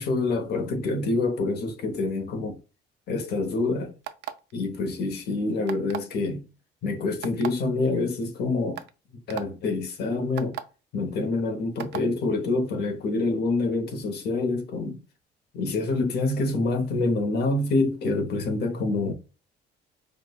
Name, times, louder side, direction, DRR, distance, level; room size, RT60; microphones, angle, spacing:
voice 1, 0.0-2.6 3.1-3.9 4.5-6.4 6.8-8.8 9.3-10.6 10.9-15.0 15.5-19.1, left 3 dB, 60° left, 0.8 m, -26 dB
sound 1, 4.0-4.5 5.7-6.1 7.2-7.5 8.2-8.3 8.8-8.9 9.3-9.4 10.4-10.6 11.8-12.0, right 12 dB, 65° right, 0.4 m, -34 dB
4.8 x 2.2 x 2.2 m
cardioid pair, 160°, 19 cm